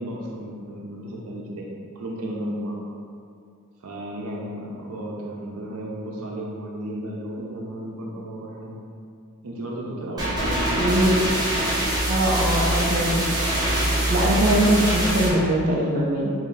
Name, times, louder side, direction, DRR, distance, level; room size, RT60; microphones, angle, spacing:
voice 1, 0.0-1.7 1.9-2.8 3.8-8.8 9.4-11.4, right 1 dB, 85° right, -2 dB, 0.6 m, -34 dB
sound 1, 10.2-15.3, right 1 dB, 20° right, 0.8 m, -24 dB
voice 2, 10.8-11.2 12.1-13.2 14.1-16.3, right 1 dB, 40° right, -4 dB, 0.4 m, -21 dB
3.0 x 2.8 x 4.0 m, 2.4 s
head